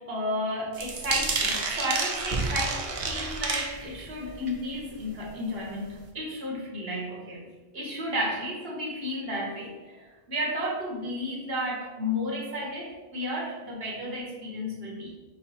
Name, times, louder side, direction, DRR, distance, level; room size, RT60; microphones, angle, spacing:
voice 1, 0.0-7.4 7.7-15.1, equal, 65° right, -3 dB, 1.4 m, -32 dB
sound 1, 0.7-4.1 4.5-4.8 5.2-5.3 5.6-5.7, right 3 dB, 45° right, 0.5 m, -30 dB
5.5 x 2.1 x 4.0 m, 1.2 s
omnidirectional pair, 1.1 m